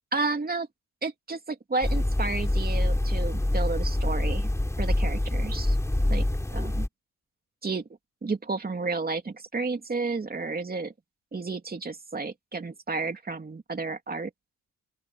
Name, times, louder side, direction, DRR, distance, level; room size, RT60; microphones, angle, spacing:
voice 1, 0.1-0.7 1.0-4.5 4.8-5.8 6.1-6.9 7.6-7.9 8.2-10.9 11.3-14.3, right 3 dB, 30° right, 3.0 m, -32 dB
sound 1, 1.8-6.9, left 1 dB, 10° left, 3.2 m, -26 dB
open air
cardioid pair, 115°, 32 cm